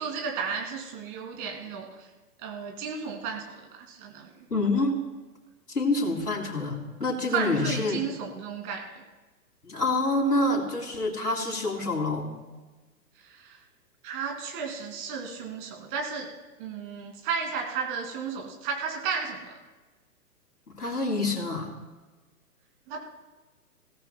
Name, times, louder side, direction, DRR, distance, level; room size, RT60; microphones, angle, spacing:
voice 1, 0.0-2.1 2.4-4.3 7.3-9.0 13.2-13.6 14.0-16.3 16.6-19.5 22.9-23.0, right 6 dB, 30° right, 2 dB, 2.5 m, -33 dB
voice 2, 4.5-4.9 5.7-8.0 9.6-12.3 20.8-21.7, left 2 dB, 75° left, -1 dB, 3.2 m, -27 dB
21.5 x 16.5 x 2.2 m, 1.2 s
figure-of-eight pair, 120°, 47 cm